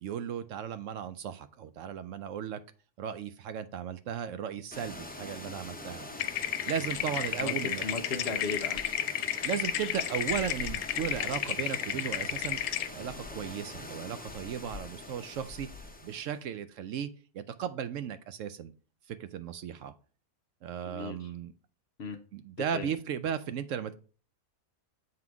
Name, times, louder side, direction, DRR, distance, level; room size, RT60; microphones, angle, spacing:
voice 1, 0.0-2.6 3.0-6.1 6.7-7.8 9.4-12.6 12.9-15.7 16.0-17.1 17.3-18.7 19.1-19.9 20.6-21.5 22.3-23.9, right 8 dB, 70° right, 12 dB, 0.8 m, -36 dB
sound 1, 4.7-16.4, left 2 dB, 10° left, 0.4 m, -43 dB
sound 2, 6.2-12.9, left 11 dB, 90° left, 1.1 m, -33 dB
voice 2, 7.4-8.8 20.8-21.3 22.0-22.2 22.7-22.9, left 4 dB, 55° left, 7 dB, 0.9 m, -36 dB
7.6 x 3.9 x 4.6 m, 0.38 s
omnidirectional pair, 1.5 m